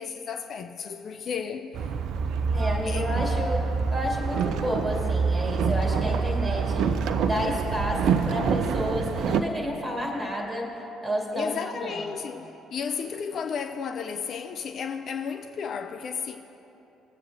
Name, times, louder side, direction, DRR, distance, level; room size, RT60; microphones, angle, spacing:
voice 1, 0.0-1.8 2.9-3.1 11.3-16.4, left 6 dB, 50° left, 0.4 m, -33 dB
Boat Water vehicle, 1.7-9.4, right 5 dB, 60° right, 0.4 m, -26 dB
voice 2, 2.5-3.6 3.9-6.9 7.2-10.7 11.0-12.2, equal, 15° right, 2.2 m, -30 dB
19.5 x 7.8 x 2.6 m
figure-of-eight pair, 50°, 0 cm